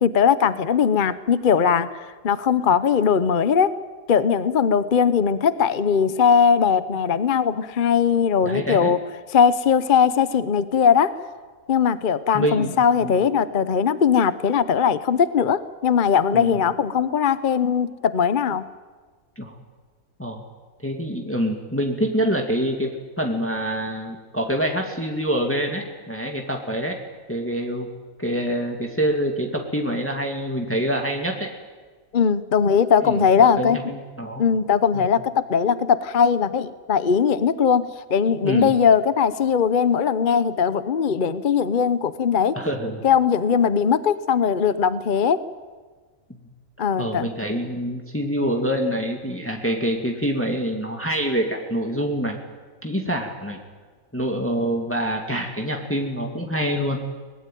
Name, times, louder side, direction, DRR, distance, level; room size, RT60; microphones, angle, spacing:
voice 1, 0.0-3.7 4.1-9.0 9.3-11.1 11.7-18.6 32.1-33.8 34.4-42.6 43.0-45.4 46.8-47.3, left 7 dB, 45° left, 14 dB, 0.9 m, -20 dB
voice 2, 8.4-8.9 12.3-12.7 13.0-13.1 16.3-16.6 19.4-19.5 20.2-20.4 20.8-27.0 27.3-27.9 28.2-31.5 33.0-34.4 34.9-35.1 38.4-38.8 42.5-43.0 47.0-52.4 52.8-53.6 54.1-57.0, equal, 10° left, 2 dB, 2.2 m, -26 dB
23.5 x 20.0 x 9.2 m, 1.4 s
omnidirectional pair, 1.4 m